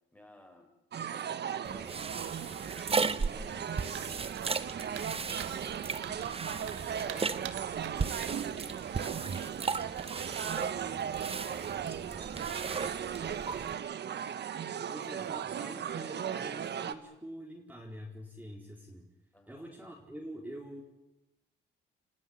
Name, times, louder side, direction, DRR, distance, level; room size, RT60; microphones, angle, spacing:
voice 1, 0.1-0.7 1.1-2.4 3.2-6.6 7.0-7.5 7.8-12.7 13.1-14.0 14.5-15.1 19.3-19.7, left 1 dB, 10° left, 4 dB, 5.7 m, -57 dB
sound 1, 0.9-16.9, right 8 dB, 60° right, 1.3 m, -37 dB
sound 2, 1.7-13.7, right 4 dB, 30° right, 1.1 m, -37 dB
sound 3, 3.9-9.1, right 11 dB, 85° right, 1.6 m, -47 dB
voice 2, 14.9-19.1 19.5-20.8, equal, 10° right, -2 dB, 4.6 m, -45 dB
29.5 x 14.5 x 9.8 m, 0.92 s
cardioid pair, 90°, 20 cm